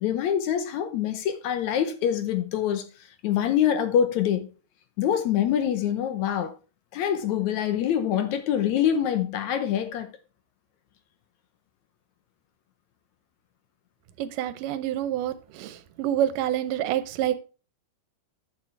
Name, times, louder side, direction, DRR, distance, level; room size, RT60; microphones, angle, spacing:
voice 1, 0.0-2.8 3.2-4.5 5.0-6.5 6.9-10.1, left 9 dB, 75° left, 2.0 m, -25 dB
voice 2, 14.2-15.3 15.6-15.7 16.0-17.4, right 11 dB, 85° right, 2.4 m, -27 dB
11.0 x 7.0 x 3.4 m
omnidirectional pair, 3.7 m